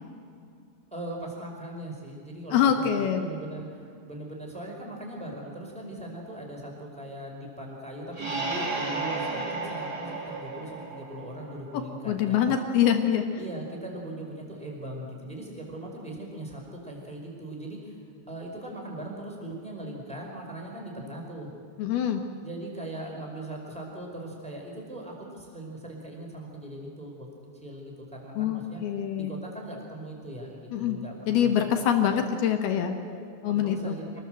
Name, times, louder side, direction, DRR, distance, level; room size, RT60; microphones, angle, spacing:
voice 1, 0.9-12.5 13.4-18.0 18.3-21.5 22.4-27.3 27.6-28.8 29.1-31.5 33.0-34.2, right 1 dB, ahead, 0 dB, 3.9 m, -40 dB
voice 2, 2.5-3.2 12.1-13.3 21.8-22.2 28.4-29.3 30.7-31.0 31.3-33.0 33.4-34.0, left 9 dB, 70° left, 5 dB, 2.4 m, -24 dB
sound 1, 8.1-11.7, right 3 dB, 40° right, 1.4 m, -33 dB
26.5 x 19.5 x 7.8 m, 2.3 s
omnidirectional pair, 5.9 m